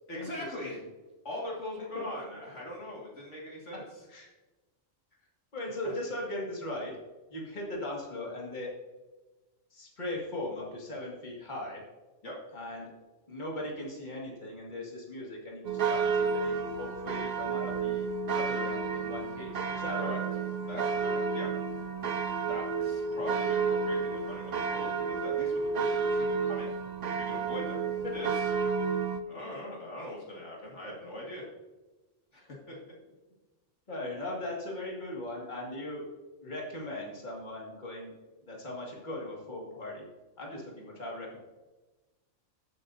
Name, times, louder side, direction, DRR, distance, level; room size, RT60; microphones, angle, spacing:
voice 1, 0.1-0.8 1.2-3.8 5.8-5.9 12.2-12.3 20.0-20.2 20.7-21.5 22.5-26.7 27.2-27.8 28.1-28.5 29.3-31.5 32.3-32.8, left 1 dB, 65° left, -4 dB, 2.3 m, -41 dB
voice 2, 5.5-6.9 7.3-8.7 9.7-11.8 12.5-12.9 13.3-20.2 33.9-36.0 36.4-38.1 38.4-40.1 40.4-41.4, left 1 dB, 35° left, -3 dB, 2.2 m, -39 dB
Bled Mad Church Bells, 15.6-29.2, right 5 dB, 50° right, 0.5 m, -31 dB
14.5 x 7.7 x 2.7 m, 1.2 s
omnidirectional pair, 1.3 m